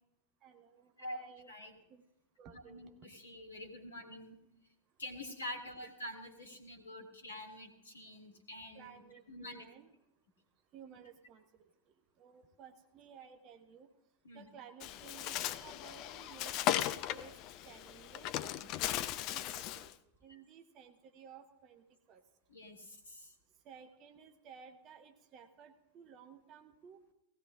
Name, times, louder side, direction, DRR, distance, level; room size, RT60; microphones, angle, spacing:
voice 1, 0.4-1.5 1.9-2.0 2.4-3.0 8.7-9.9 10.7-11.7 12.2-13.9 14.3-17.3 17.6-18.3 18.8-19.9 20.2-22.2 23.6-27.0, right 7 dB, 35° right, 7 dB, 0.9 m, -56 dB
voice 2, 1.5-1.8 2.5-4.4 5.0-9.0 9.3-9.7 14.2-14.4 18.5-19.0 20.3-20.4 22.5-23.3, left 1 dB, 75° left, 5 dB, 1.9 m, -47 dB
Bird, 14.8-19.9, left 12 dB, 40° left, 0.5 m, -37 dB
18.0 x 16.0 x 2.4 m, 0.89 s
figure-of-eight pair, 90°, 0 cm